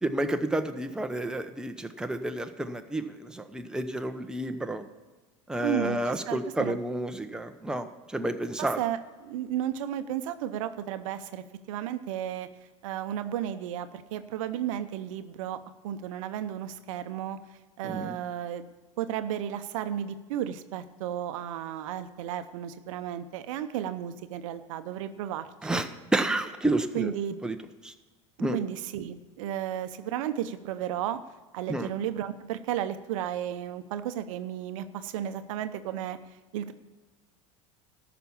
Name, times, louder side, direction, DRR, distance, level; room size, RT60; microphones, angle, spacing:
voice 1, 0.0-4.9 5.5-8.8 17.8-18.2 25.6-27.1 27.4-27.6 27.8-27.9 28.4-28.6 31.7-31.9, right 1 dB, 5° right, 6 dB, 0.9 m, -30 dB
voice 2, 5.6-6.7 8.6-12.5 12.8-17.4 17.8-18.7 19.0-25.8 26.9-27.3 28.5-31.2 31.5-36.2 36.5-36.7, right 10 dB, 75° right, 11 dB, 0.7 m, -33 dB
13.5 x 6.0 x 7.1 m, 1.3 s
hypercardioid pair, 90°, 17 cm